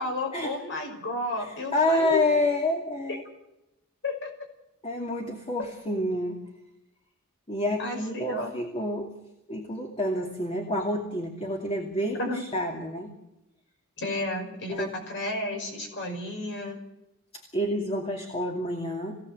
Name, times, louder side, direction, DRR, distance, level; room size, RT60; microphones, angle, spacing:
voice 1, 0.0-2.2 3.1-3.2 4.0-4.3 7.8-8.0 8.3-8.5 12.2-12.4 14.0-16.8, left 2 dB, 55° left, 3 dB, 5.7 m, -32 dB
voice 2, 1.4-3.2 4.8-6.4 7.5-9.1 9.5-13.1 14.7-14.9 17.3-19.1, left 1 dB, 25° left, 1 dB, 2.6 m, -28 dB
23.0 x 17.0 x 7.8 m, 0.92 s
head